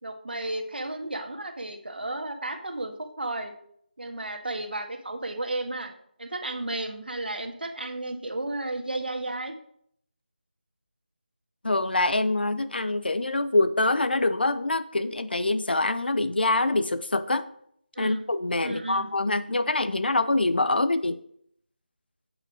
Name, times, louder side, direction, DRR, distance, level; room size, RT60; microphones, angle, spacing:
voice 1, 0.0-3.5 4.0-5.9 6.2-9.5 17.9-18.2 18.6-19.1, right 2 dB, 75° right, 5 dB, 1.6 m, -33 dB
voice 2, 11.6-17.5 18.0-21.2, left 2 dB, 75° left, 12 dB, 0.8 m, -25 dB
8.1 x 6.4 x 5.0 m, 0.67 s
figure-of-eight pair, 170°, 5 cm